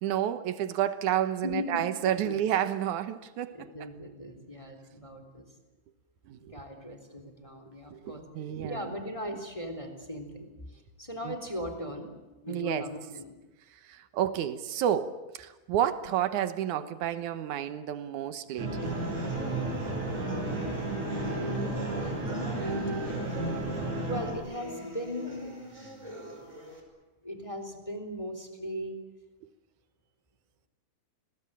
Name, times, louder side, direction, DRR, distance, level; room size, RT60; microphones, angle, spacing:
voice 1, 0.0-3.7 6.3-6.5 7.9-8.9 11.3-11.4 12.5-12.9 13.7-19.0 22.7-24.0, right 10 dB, 90° right, 11 dB, 2.6 m, -31 dB
voice 2, 1.4-1.8 2.2-2.3 3.5-5.4 6.5-8.2 8.6-12.1 12.4-13.4 21.2-23.0 24.0-25.5 27.2-29.0, left 1 dB, 10° left, 7 dB, 3.5 m, -38 dB
sound 1, 18.6-24.3, right 2 dB, 70° right, 9.1 m, -32 dB
sound 2, 18.8-26.8, equal, 10° right, 5.2 m, -42 dB
29.5 x 21.5 x 8.9 m, 1.1 s
omnidirectional pair, 3.4 m